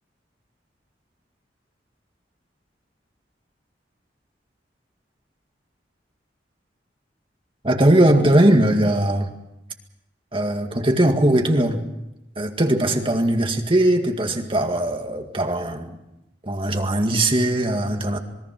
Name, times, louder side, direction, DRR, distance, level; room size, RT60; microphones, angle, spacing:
voice 1, 7.6-9.3 10.3-11.8 12.4-16.0 16.4-18.2, right 1 dB, 30° right, 4 dB, 2.0 m, -19 dB
26.5 x 21.5 x 6.0 m, 0.88 s
head